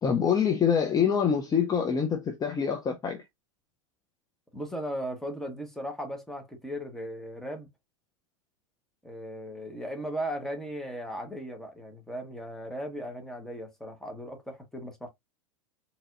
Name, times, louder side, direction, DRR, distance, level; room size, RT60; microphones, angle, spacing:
voice 1, 0.0-3.2, left 7 dB, 20° left, 0.7 m, -25 dB
voice 2, 4.5-7.7 9.0-15.1, equal, ahead, 1.2 m, -37 dB
4.0 x 2.8 x 2.5 m
hypercardioid pair, 105°, 17 cm